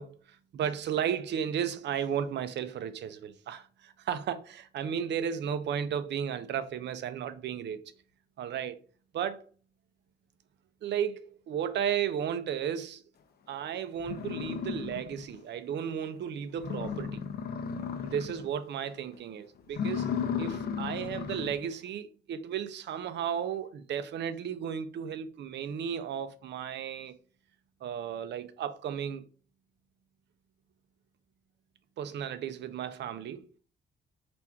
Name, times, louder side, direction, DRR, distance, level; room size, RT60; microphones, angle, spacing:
voice 1, 0.0-7.8 8.4-8.8 9.1-9.5 10.8-13.0 13.5-17.2 18.1-20.1 20.4-27.2 27.8-29.3 32.0-33.5, right 8 dB, 60° right, 0.5 m, -34 dB
sound 1, 13.5-13.6 14.0-15.4 15.8-15.9 16.3-16.4 16.6-18.5 18.8-19.2 19.6-21.7, left 7 dB, 50° left, 0.6 m, -35 dB
4.4 x 2.6 x 3.5 m
cardioid pair, 90°, 20 cm